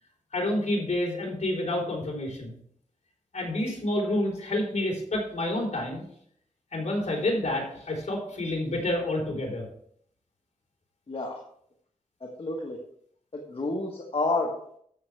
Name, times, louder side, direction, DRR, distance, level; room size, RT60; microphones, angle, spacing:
voice 1, 0.3-2.6 3.3-6.0 6.7-9.6, left 1 dB, 60° left, -1 dB, 3.9 m, -29 dB
voice 2, 11.1-11.4 12.2-12.8 13.3-14.5, left 2 dB, 45° left, -1 dB, 1.5 m, -30 dB
13.0 x 7.3 x 3.4 m, 0.65 s
wide cardioid pair, 90°, 13 cm